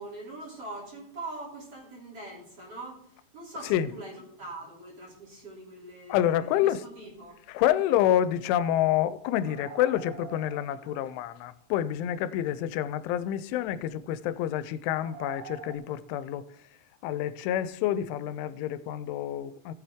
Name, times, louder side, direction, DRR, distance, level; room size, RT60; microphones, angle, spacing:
voice 1, 0.0-3.0 3.3-7.3, right 2 dB, 35° right, 3.4 m, -42 dB
voice 2, 6.1-6.8 7.5-16.5 17.0-19.7, left 11 dB, 90° left, 3.0 m, -28 dB
sound 1, 6.7-6.8 7.2-7.3 7.5-7.6 9.4-11.4 12.0-12.1 13.5-13.7 15.0-15.8, right 5 dB, 55° right, 2.8 m, -46 dB
17.5 x 7.3 x 3.5 m
omnidirectional pair, 5.4 m